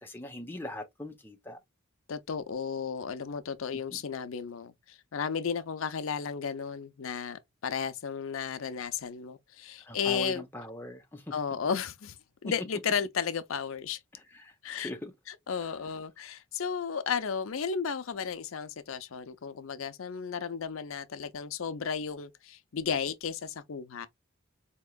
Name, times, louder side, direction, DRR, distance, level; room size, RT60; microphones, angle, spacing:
voice 1, 0.0-1.6 3.9-4.0 9.8-11.3 12.4-12.5 14.3-15.1, left 1 dB, 10° left, 0.7 m, -41 dB
voice 2, 2.1-10.4 11.3-12.2 12.4-14.0 14.6-14.9 15.3-24.1, left 6 dB, 90° left, 0.5 m, -34 dB
4.4 x 2.9 x 2.2 m
head